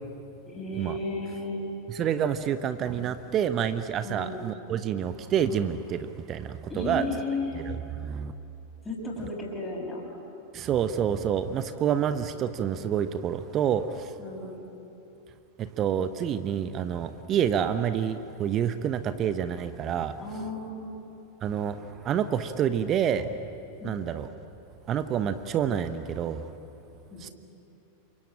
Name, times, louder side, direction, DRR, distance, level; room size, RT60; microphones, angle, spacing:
voice 1, 0.5-1.6 4.0-4.4 6.7-7.6 8.8-10.0 14.2-14.5 20.2-21.0 23.8-24.0 27.1-27.2, left 2 dB, 15° left, -4 dB, 6.2 m, -34 dB
voice 2, 1.9-7.0 7.6-8.3 10.5-14.1 15.6-20.2 21.4-23.4 23.8-24.3 24.9-26.5 27.2-27.3, right 8 dB, 30° right, 11 dB, 1.0 m, -28 dB
28.0 x 23.5 x 8.9 m, 2.8 s
figure-of-eight pair, 90°, 0 cm